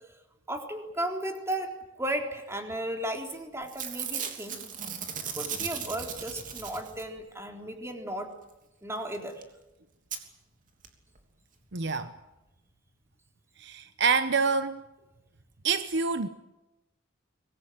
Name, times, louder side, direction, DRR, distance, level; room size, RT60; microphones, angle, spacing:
voice 1, 0.5-4.6 5.3-8.3 8.8-9.4, right 1 dB, 15° right, 3 dB, 3.7 m, -35 dB
Packing tape duct tape / Tearing, 3.1-3.4 3.6-7.2 9.1-9.2 9.4-9.5 10.1-10.2 10.8-10.9 11.2-11.3, right 7 dB, 40° right, 3.3 m, -37 dB
voice 2, 11.7-12.1 13.6-14.8 15.6-16.3, right 5 dB, 60° right, 10 dB, 1.0 m, -27 dB
24.5 x 21.0 x 9.3 m, 0.97 s
head